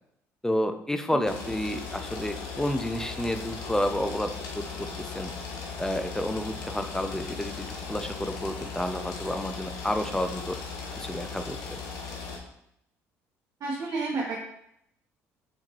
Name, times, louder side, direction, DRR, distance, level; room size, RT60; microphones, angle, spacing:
voice 1, 0.4-5.3 5.8-10.6 11.0-11.8, left 1 dB, 5° left, 8 dB, 0.5 m, -30 dB
sound 1, 1.2-12.4, left 5 dB, 75° left, 0.9 m, -38 dB
voice 2, 13.6-14.4, right 3 dB, 55° right, -3 dB, 1.0 m, -31 dB
4.4 x 3.5 x 3.2 m, 0.77 s
supercardioid pair, 65°, 7 cm